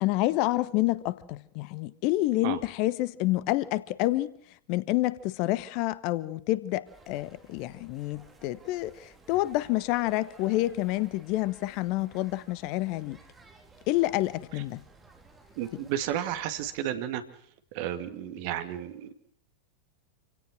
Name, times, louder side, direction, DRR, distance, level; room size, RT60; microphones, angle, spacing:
voice 1, 0.0-4.3 4.7-13.2 13.9-14.8, left 17 dB, 45° left, 1.1 m, -28 dB
sound 1, 6.8-16.8, right 3 dB, 10° right, 3.7 m, -55 dB
voice 2, 15.6-17.2 17.7-19.1, right 11 dB, 45° right, 2.2 m, -32 dB
27.5 x 17.5 x 6.2 m
figure-of-eight pair, 90°, 0 cm